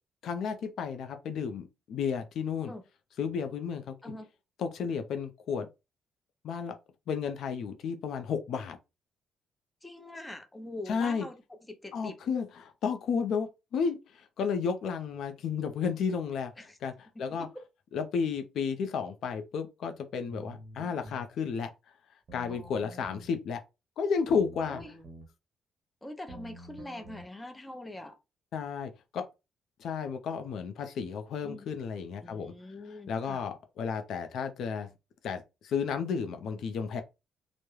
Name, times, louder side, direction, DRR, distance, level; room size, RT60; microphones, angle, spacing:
voice 1, 0.2-2.7 3.2-3.9 4.6-5.7 6.4-6.8 7.1-8.8 10.9-11.3 11.9-16.9 17.2-17.5 17.9-21.7 22.3-23.6 24.0-24.8 28.5-29.2 29.8-32.5 33.1-34.9 35.2-37.0, left 6 dB, 75° left, 0.4 m, -32 dB
voice 2, 9.8-12.2 16.6-16.8 17.1-17.5 22.5-23.1 24.7-24.9 26.0-28.2 31.4-31.7 32.2-33.5, left 1 dB, 15° left, 0.6 m, -44 dB
sound 1, 20.3-21.3 22.3-23.3 24.3-25.3 26.3-27.3, right 1 dB, 50° right, 0.7 m, -48 dB
2.2 x 2.0 x 3.0 m
cardioid pair, 90°, 0 cm